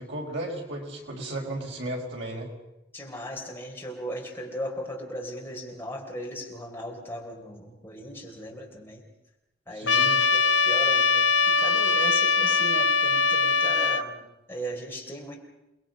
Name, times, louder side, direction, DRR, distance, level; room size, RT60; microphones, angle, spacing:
voice 1, 0.0-2.5 9.7-10.2, right 1 dB, 80° right, 0 dB, 4.8 m, -34 dB
voice 2, 2.9-9.1 9.7-15.4, equal, 15° left, -1 dB, 3.9 m, -37 dB
Trumpet, 9.9-14.0, left 4 dB, 85° left, 0.9 m, -22 dB
29.0 x 21.0 x 5.4 m, 0.94 s
head